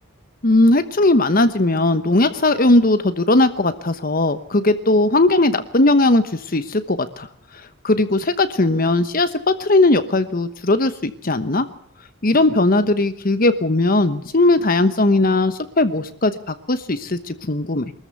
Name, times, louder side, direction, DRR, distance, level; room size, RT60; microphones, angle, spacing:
voice 1, 0.4-7.3 7.8-11.7 12.2-17.9, left 2 dB, 45° left, 11 dB, 1.1 m, -18 dB
23.0 x 14.0 x 8.2 m, 0.69 s
head